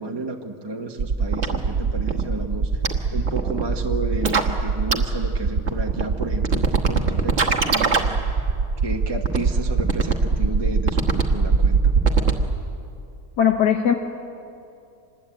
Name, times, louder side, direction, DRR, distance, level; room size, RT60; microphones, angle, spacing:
voice 1, 0.0-2.8 3.1-8.2 8.8-11.9, right 2 dB, 15° right, 2 dB, 1.1 m, -32 dB
sound 1, 1.0-12.6, right 5 dB, 45° right, 1.6 m, -21 dB
voice 2, 13.4-13.9, left 8 dB, 85° left, 5 dB, 1.7 m, -18 dB
26.0 x 20.5 x 8.7 m, 2.5 s
omnidirectional pair, 1.7 m